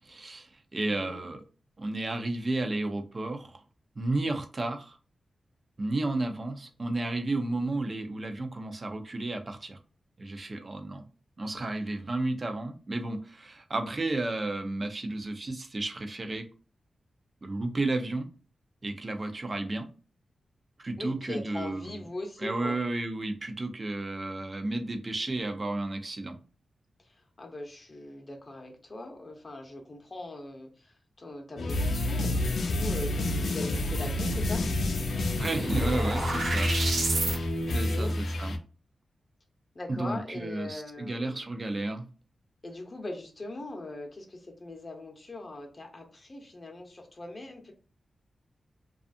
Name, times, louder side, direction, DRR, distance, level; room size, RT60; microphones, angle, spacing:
voice 1, 0.0-1.4 1.8-3.6 4.0-5.0 5.8-9.8 10.2-11.1 11.4-16.5 17.4-18.3 18.8-19.9 20.8-21.9 22.4-26.4 35.4-37.0 37.7-38.6 39.9-42.1, right 2 dB, 40° right, 6 dB, 0.5 m, -32 dB
voice 2, 21.0-22.8 27.0-34.6 37.2-38.1 39.7-41.5 42.6-47.7, left 2 dB, 35° left, 2 dB, 0.6 m, -41 dB
sound 1, 31.6-38.6, left 1 dB, 80° left, 0.4 m, -29 dB
sound 2, 34.9-37.4, right 2 dB, 80° right, 0.7 m, -31 dB
2.5 x 2.3 x 2.5 m, 0.35 s
wide cardioid pair, 85°, 0 cm